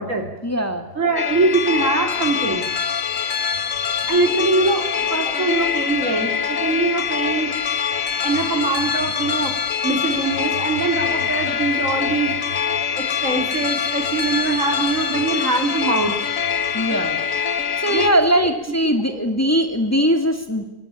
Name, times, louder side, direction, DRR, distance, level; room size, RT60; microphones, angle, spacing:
voice 1, 0.4-0.9 16.7-17.2 17.8-20.6, equal, 10° left, 6 dB, 2.3 m, -20 dB
voice 2, 1.0-2.7 4.1-7.6 8.2-9.5 9.8-12.4 12.9-16.1 17.9-18.5, right 3 dB, 70° right, 5 dB, 3.9 m, -22 dB
sound 1, 1.2-18.1, left 7 dB, 85° left, 1.9 m, -24 dB
25.5 x 23.0 x 9.2 m, 0.90 s
omnidirectional pair, 1.4 m